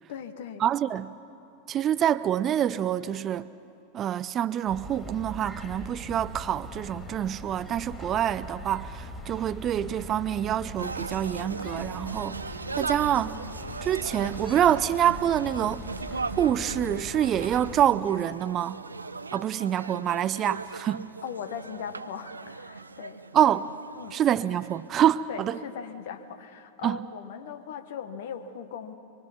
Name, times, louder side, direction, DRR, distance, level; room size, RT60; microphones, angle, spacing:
voice 1, 0.1-0.6 21.2-23.2 23.9-24.2 25.3-28.9, left 7 dB, 55° left, 1.3 m, -39 dB
voice 2, 0.6-1.2 1.7-3.5 3.9-12.4 12.8-13.4 13.8-15.8 16.4-18.8 19.3-21.1 23.3-23.7 24.1-25.6 26.8-27.0, right 10 dB, 30° right, 0.5 m, -26 dB
sound 1, 4.7-17.8, equal, 10° left, 2.9 m, -41 dB
sound 2, 10.8-24.9, right 4 dB, 80° right, 0.5 m, -38 dB
25.0 x 23.0 x 6.0 m
figure-of-eight pair, 90°, 0 cm